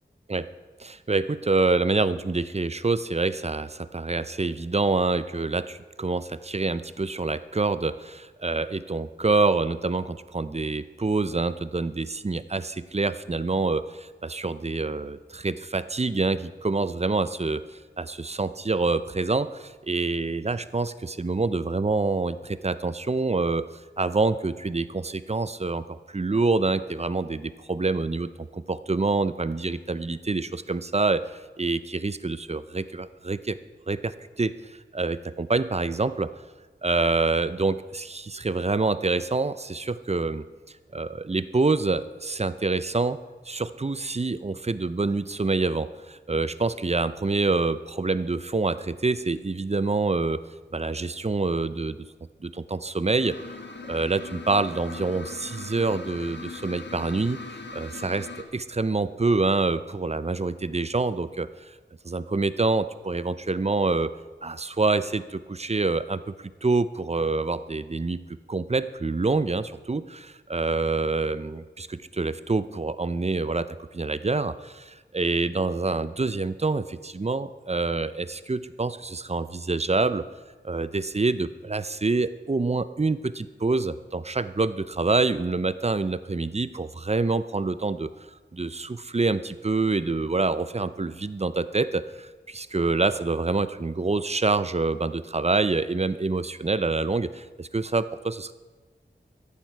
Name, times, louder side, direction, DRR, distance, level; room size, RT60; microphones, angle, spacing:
voice 1, 0.8-17.6 18.0-23.7 24.0-33.6 33.9-36.3 36.8-40.4 40.9-43.2 43.5-50.4 50.7-52.0 52.4-53.4 53.9-57.4 57.7-61.5 62.0-64.1 64.4-66.3 66.6-68.2 68.5-80.2 80.6-88.1 88.5-98.5, right 3 dB, 35° right, 14 dB, 0.6 m, -26 dB
sound 1, 53.2-58.4, left 3 dB, 65° left, 1.3 m, -40 dB
14.5 x 10.5 x 4.6 m, 1.4 s
wide cardioid pair, 50°, 20 cm